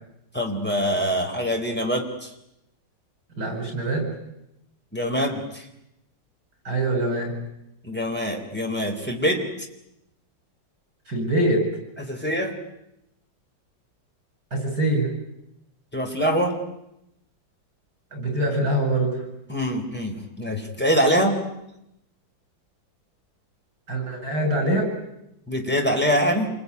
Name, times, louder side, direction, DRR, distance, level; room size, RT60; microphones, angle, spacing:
voice 1, 0.3-2.3 4.9-5.7 7.8-9.5 12.0-12.6 15.9-16.5 19.5-21.4 25.5-26.5, equal, 5° left, 2 dB, 3.9 m, -24 dB
voice 2, 3.4-4.0 6.6-7.3 11.1-11.6 14.5-15.1 18.1-19.2 23.9-24.9, right 1 dB, 65° right, 2 dB, 8.3 m, -24 dB
28.0 x 21.5 x 9.7 m, 0.85 s
omnidirectional pair, 2.0 m